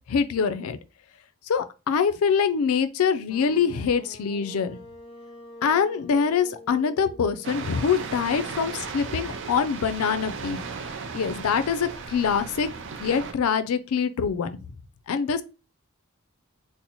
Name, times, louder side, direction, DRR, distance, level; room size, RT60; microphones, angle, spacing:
voice 1, 0.1-0.8 1.5-4.8 5.6-10.6 11.1-12.7 13.0-14.6 15.1-15.4, left 6 dB, 80° left, 0.4 m, -24 dB
sound 1, 3.3-9.2, left 1 dB, 25° left, 0.5 m, -47 dB
sound 2, 7.4-13.3, right 5 dB, 60° right, 0.5 m, -36 dB
4.0 x 2.1 x 2.9 m
head